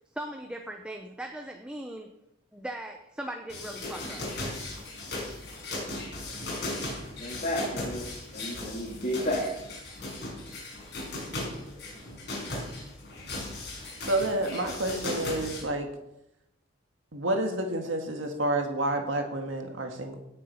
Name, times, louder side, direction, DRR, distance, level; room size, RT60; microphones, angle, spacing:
voice 1, 0.1-2.1 2.5-4.3, right 1 dB, 5° right, 4 dB, 0.8 m, -39 dB
sound 1, 3.5-15.6, left 2 dB, 55° left, 5.4 m, -37 dB
voice 2, 7.2-8.0 8.3-9.6, equal, 40° left, -3 dB, 2.4 m, -31 dB
voice 3, 14.1-15.9 17.1-20.2, right 1 dB, 80° right, 4 dB, 1.9 m, -29 dB
17.5 x 7.5 x 5.7 m, 0.87 s
head